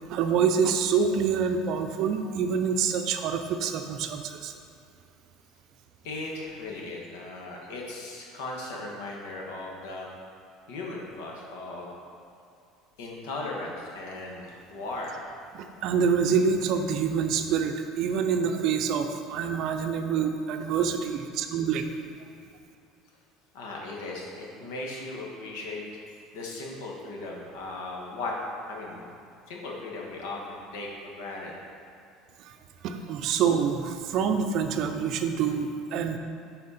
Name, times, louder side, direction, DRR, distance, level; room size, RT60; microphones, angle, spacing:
voice 1, 0.1-4.5 15.5-21.9 32.4-32.5 32.8-36.2, right 6 dB, 50° right, 6 dB, 0.5 m, -26 dB
voice 2, 6.0-10.1 10.7-11.9 13.0-15.2 23.5-25.8 26.3-28.4 28.7-29.1 29.5-31.6, left 2 dB, 80° left, -2 dB, 1.5 m, -37 dB
8.7 x 4.3 x 4.2 m, 2.6 s
cardioid pair, 155°, 0 cm